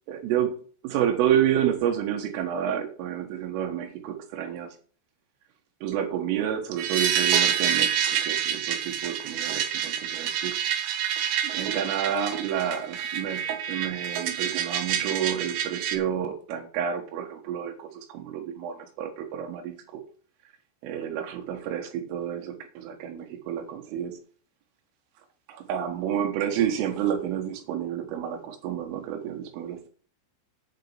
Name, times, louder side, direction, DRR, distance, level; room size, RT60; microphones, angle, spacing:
voice 1, 0.1-0.6 0.8-4.8 5.8-10.6 11.4-20.0 20.8-24.2 25.5-29.9, right 9 dB, 85° right, 4 dB, 4.0 m, -29 dB
sound 1, 6.8-16.0, right 9 dB, 65° right, 2.9 m, -27 dB
9.2 x 7.1 x 8.3 m, 0.42 s
omnidirectional pair, 5.6 m